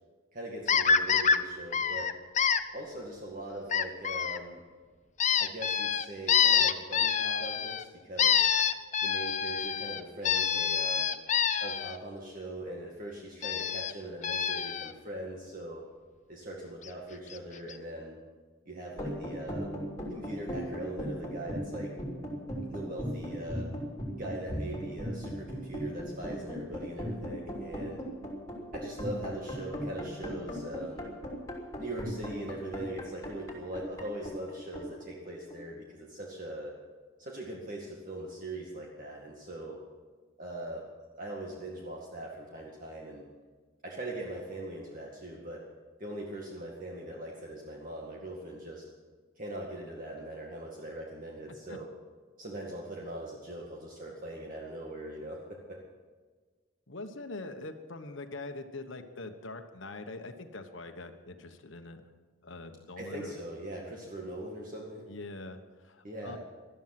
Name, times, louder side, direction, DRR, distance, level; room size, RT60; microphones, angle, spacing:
voice 1, 0.3-2.1 2.7-4.6 5.4-8.5 9.0-11.1 11.6-15.8 16.3-18.2 18.7-19.7 20.1-21.9 22.7-23.7 24.2-28.0 28.7-31.1 31.8-36.7 37.2-39.8 40.4-40.9 41.2-43.2 43.8-45.6 46.0-48.8 49.4-51.9 52.4-55.8 63.0-65.1 66.0-66.4, right 1 dB, 40° right, -2 dB, 2.1 m, -41 dB
sound 1, 0.7-1.4 1.7-2.6 3.7-4.4 5.2-7.8 8.2-12.0 13.4-13.9 14.2-14.9 16.9-17.0 17.3-17.4 17.7-17.8, left 7 dB, 35° left, 0.7 m, -27 dB
sound 2, 18.9-35.8, equal, 15° left, 3.0 m, -38 dB
voice 2, 56.9-62.0 62.4-63.3 65.1-66.4, left 2 dB, 70° left, 6 dB, 1.2 m, -43 dB
18.5 x 12.5 x 6.0 m, 1.5 s
head